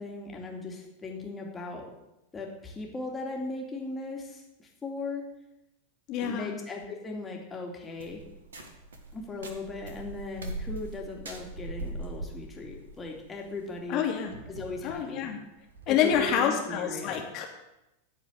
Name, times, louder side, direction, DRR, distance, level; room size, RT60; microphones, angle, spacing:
voice 1, 0.0-1.8 2.3-5.2 6.2-8.2 9.1-14.0 14.5-15.3 15.9-17.2, left 3 dB, 15° left, 0 dB, 2.6 m, -38 dB
voice 2, 6.1-6.6 13.9-14.3 14.8-15.4 15.9-17.4, left 8 dB, 40° left, 2 dB, 2.3 m, -27 dB
sound 1, 8.0-16.3, right 2 dB, 65° right, 1.6 m, -42 dB
14.5 x 4.9 x 7.9 m, 0.90 s
figure-of-eight pair, 90°, 0 cm